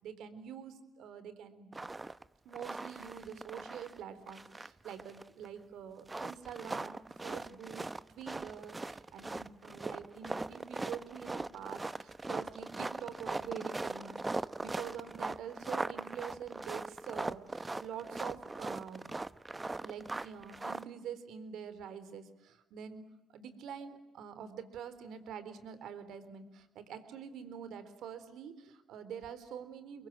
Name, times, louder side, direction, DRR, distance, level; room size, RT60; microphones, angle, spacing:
voice 1, 0.0-1.9 2.4-19.0 19.8-23.0 23.3-30.1, right 8 dB, 80° right, 12 dB, 3.7 m, -46 dB
sound 1, 1.7-2.2 2.5-4.0 4.3-5.5 6.0-20.8, right 2 dB, 20° right, 1.0 m, -40 dB
28.5 x 23.0 x 9.1 m, 0.89 s
cardioid pair, 90°, 0 cm